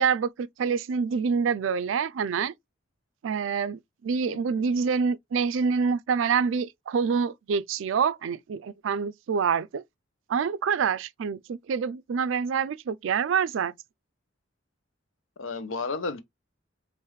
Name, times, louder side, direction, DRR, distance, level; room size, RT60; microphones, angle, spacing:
voice 1, 0.0-2.5 3.2-9.8 10.3-13.7, right 6 dB, 75° right, 0.4 m, -26 dB
voice 2, 4.3-4.7 15.4-16.2, left 3 dB, 85° left, 0.7 m, -33 dB
4.7 x 2.5 x 3.1 m
head